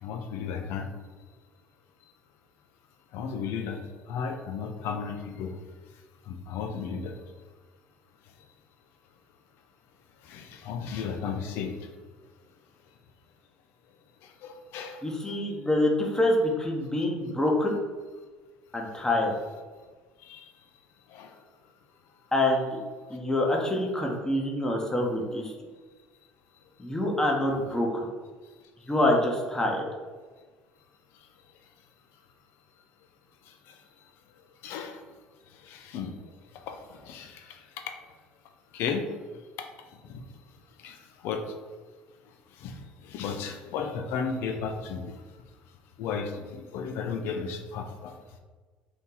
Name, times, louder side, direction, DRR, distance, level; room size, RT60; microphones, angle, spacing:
voice 1, 0.0-0.9 3.1-3.8 4.1-5.6 6.3-7.2 10.2-11.9 14.2-15.4 20.2-20.5 21.1-21.4 33.5-33.8 34.6-35.0 35.5-36.1 36.5-37.8 38.7-39.1 39.6-40.2 40.8-41.5 42.5-45.2 46.0-48.1, left 6 dB, 65° left, 5 dB, 0.5 m, -35 dB
voice 2, 15.0-17.8 18.7-19.3 22.3-22.8 23.1-25.5 26.8-28.0 28.9-29.8, left 1 dB, 15° left, 0 dB, 0.8 m, -26 dB
2.9 x 2.7 x 3.7 m, 1.4 s
hypercardioid pair, 65°, 4 cm